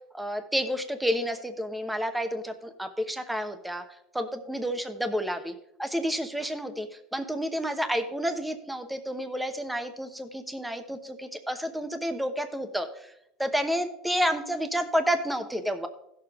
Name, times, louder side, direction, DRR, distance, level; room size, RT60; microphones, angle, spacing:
voice 1, 0.1-3.8 4.1-5.5 5.8-6.9 7.1-13.1 13.4-15.9, equal, 5° right, 8 dB, 1.0 m, -30 dB
15.5 x 6.9 x 3.5 m, 0.81 s
supercardioid pair, 130°, 0 cm